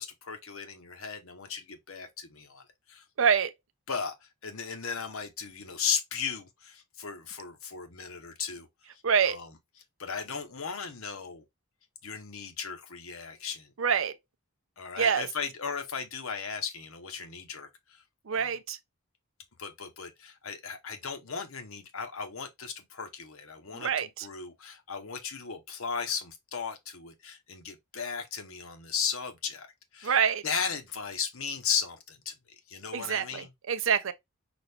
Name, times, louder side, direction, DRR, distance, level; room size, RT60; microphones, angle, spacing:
voice 1, 0.0-3.0 3.9-8.7 8.9-9.6 10.0-11.4 12.0-13.7 14.8-18.0 18.3-18.6 19.6-29.7 29.9-32.3 32.7-33.5, left 6 dB, 70° left, 1.0 m, -36 dB
voice 2, 3.2-3.5 9.0-9.3 13.8-14.1 15.0-15.3 18.3-18.8 23.8-24.3 30.0-30.4 32.9-34.1, right 7 dB, 60° right, 0.6 m, -26 dB
6.0 x 2.5 x 3.4 m
head